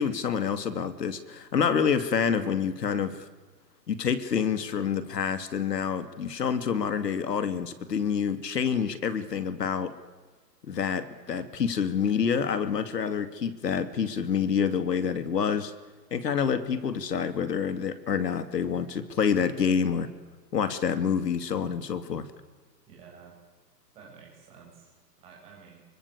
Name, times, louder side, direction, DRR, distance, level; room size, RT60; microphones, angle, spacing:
voice 1, 0.0-3.3 3.9-9.9 10.6-15.7 16.1-20.1 20.5-22.3, left 7 dB, 75° left, 11 dB, 2.6 m, -27 dB
voice 2, 22.9-23.4 23.9-25.9, right 6 dB, 10° right, -2 dB, 7.3 m, -51 dB
26.0 x 24.5 x 8.3 m, 1.3 s
hypercardioid pair, 180°, 49 cm